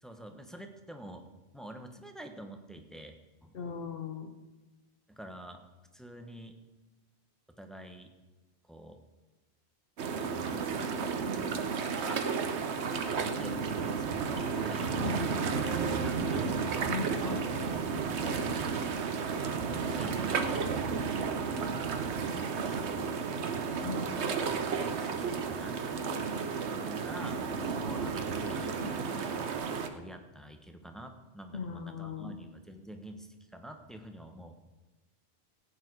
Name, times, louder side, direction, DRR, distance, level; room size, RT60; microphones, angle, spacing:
voice 1, 0.0-3.8 5.1-5.6 5.9-6.6 7.6-8.1 8.6-9.0 11.9-12.2 13.2-16.7 19.9-20.7 21.4-21.8 22.6-23.2 23.7-29.3 29.9-34.5, right 1 dB, ahead, 5 dB, 1.1 m, -48 dB
voice 2, 3.5-4.3 15.0-15.3 16.9-17.4 23.8-24.1 31.5-32.4, left 6 dB, 60° left, 4 dB, 1.1 m, -38 dB
sound 1, 10.0-29.9, right 5 dB, 80° right, 1.2 m, -32 dB
16.0 x 9.0 x 4.7 m, 1.1 s
omnidirectional pair, 1.1 m